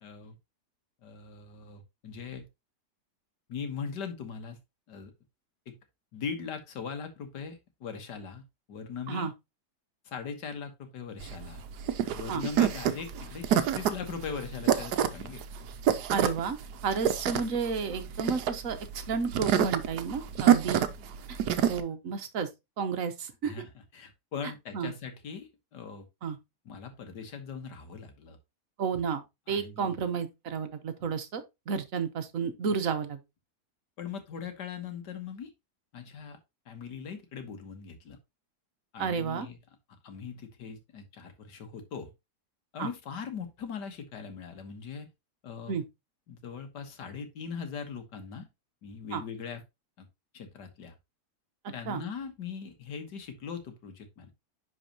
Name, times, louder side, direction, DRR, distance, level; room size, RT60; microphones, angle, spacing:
voice 1, 0.0-0.4 1.0-2.5 3.5-4.6 4.9-5.1 5.7-5.8 6.1-8.4 8.7-9.3 10.1-11.6 12.1-15.4 20.4-20.5 23.4-26.0 26.7-28.4 29.5-29.9 34.0-35.5 35.9-36.4 36.7-38.2 38.9-39.6 40.0-42.1 42.7-45.1 45.4-45.7 46.3-48.5 48.8-49.6 50.0-50.1 50.3-50.9 51.7-54.3, left 6 dB, 85° left, 2.0 m, -40 dB
sound 1, 11.2-21.8, right 9 dB, 75° right, 1.3 m, -27 dB
voice 2, 16.1-16.6 16.8-20.8 21.3-21.4 21.7-22.5 22.8-23.5 24.7-24.9 26.2-26.4 28.8-33.2 39.0-39.5 42.8-42.9 45.7-45.8 49.1-49.2 51.9-52.0, right 6 dB, 55° right, 1.3 m, -32 dB
10.5 x 4.4 x 2.9 m
omnidirectional pair, 1.8 m